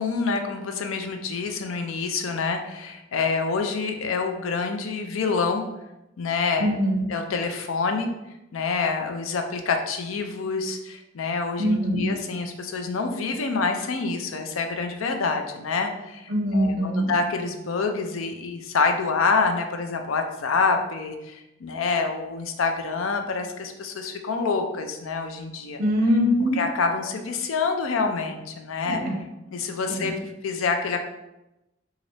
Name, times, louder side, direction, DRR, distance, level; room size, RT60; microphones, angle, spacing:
voice 1, 0.0-5.7 6.2-6.7 7.1-8.1 8.5-25.8 26.6-29.0 29.5-30.1 30.4-31.0, left 4 dB, 85° left, 5 dB, 0.5 m, -27 dB
voice 2, 6.6-7.1 11.6-12.1 16.3-17.1 25.8-26.6 28.8-29.2 29.9-30.2, equal, 50° right, 0 dB, 0.8 m, -23 dB
4.0 x 2.4 x 3.1 m, 0.95 s
head